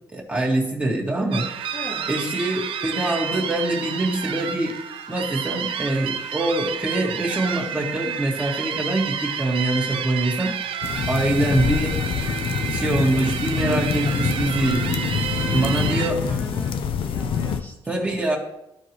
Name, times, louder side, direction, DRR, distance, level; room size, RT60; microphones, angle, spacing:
voice 1, 0.1-1.5 2.1-4.8 5.1-10.5 11.1-12.0 12.6-14.9 15.5-16.2 17.9-18.4, right 1 dB, 15° right, -4 dB, 1.9 m, -24 dB
sound 1, 1.3-16.1, right 7 dB, 70° right, 0.6 m, -30 dB
voice 2, 1.7-2.1 15.4-18.2, left 2 dB, 20° left, -3 dB, 1.5 m, -37 dB
sound 2, 10.8-17.6, left 7 dB, 70° left, 0.6 m, -26 dB
13.5 x 4.7 x 3.1 m, 0.86 s
cardioid pair, 115°, 9 cm